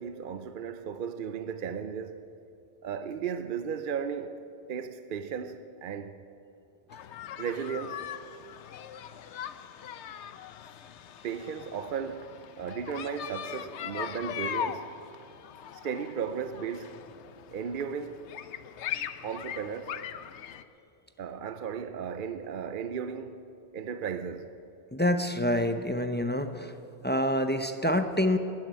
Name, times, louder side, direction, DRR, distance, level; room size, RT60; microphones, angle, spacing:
voice 1, 0.0-2.2 2.8-4.4 4.7-6.2 7.4-8.0 11.2-12.3 12.6-14.9 15.8-16.9 17.5-18.2 19.2-20.0 21.2-23.4 23.7-24.5, right 7 dB, 60° right, 0.7 m, -35 dB
sound 1, 6.9-20.6, left 9 dB, 90° left, 1.0 m, -40 dB
voice 2, 24.9-26.8 27.0-28.4, left 1 dB, 15° left, 0.5 m, -27 dB
13.5 x 10.5 x 9.6 m
omnidirectional pair, 1.1 m